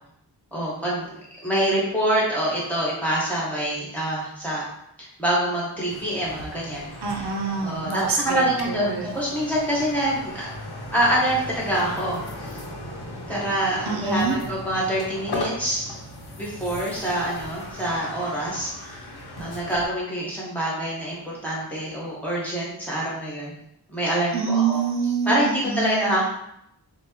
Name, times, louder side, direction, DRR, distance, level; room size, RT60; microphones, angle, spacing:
voice 1, 0.5-1.1 1.4-4.6 5.0-6.9 7.6-10.5 10.9-12.2 12.5-12.6 13.3-16.0 16.4-19.1 19.4-23.5 23.9-24.8 25.2-26.3, right 1 dB, 5° left, -6 dB, 1.5 m, -25 dB
sound 1, 5.9-19.9, left 1 dB, 70° left, 0.9 m, -37 dB
voice 2, 7.0-9.1 13.9-14.4 24.3-26.2, right 5 dB, 75° right, 1 dB, 0.6 m, -26 dB
4.3 x 2.1 x 3.0 m, 0.78 s
wide cardioid pair, 60°, 40 cm